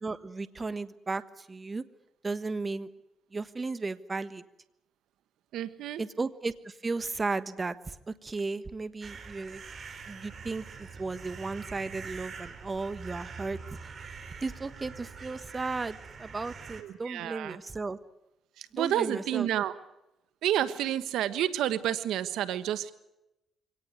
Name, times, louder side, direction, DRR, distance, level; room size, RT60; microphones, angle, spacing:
voice 1, 0.0-1.8 2.2-2.9 3.3-4.4 6.0-9.6 10.1-13.9 14.4-18.0 18.8-19.5, right 3 dB, 25° right, 13 dB, 1.3 m, -35 dB
voice 2, 5.5-6.0 16.8-17.6 18.6-19.7 20.4-22.9, right 11 dB, 85° right, 13 dB, 1.3 m, -30 dB
sound 1, 9.0-16.8, right 5 dB, 45° right, 3.9 m, -44 dB
24.0 x 18.0 x 9.6 m, 0.90 s
cardioid pair, 90°, 0 cm